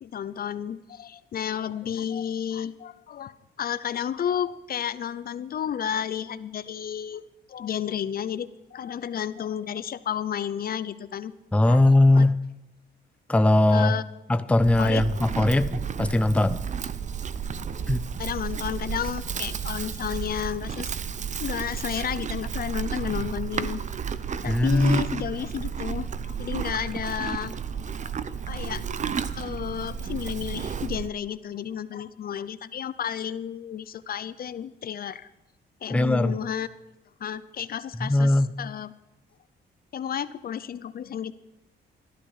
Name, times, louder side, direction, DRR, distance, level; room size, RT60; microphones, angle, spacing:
voice 1, 0.0-11.3 11.6-11.8 12.1-12.2 13.7-14.0 14.8-15.0 18.2-20.9 21.4-23.8 24.4-27.6 28.0-28.1 28.5-28.8 29.3-35.3 35.8-36.7 37.2-38.9 39.9-41.3, left 9 dB, 50° left, 15 dB, 0.6 m, -32 dB
voice 2, 11.5-12.4 13.3-13.9 14.3-16.6 17.9-18.0 24.5-25.1 35.9-36.4 38.0-38.5, left 1 dB, 5° left, 12 dB, 0.5 m, -20 dB
Livestock farm animals working animals, 14.6-31.1, right 7 dB, 40° right, 0.6 m, -32 dB
13.5 x 12.5 x 4.9 m, 0.97 s
cardioid pair, 90°, 20 cm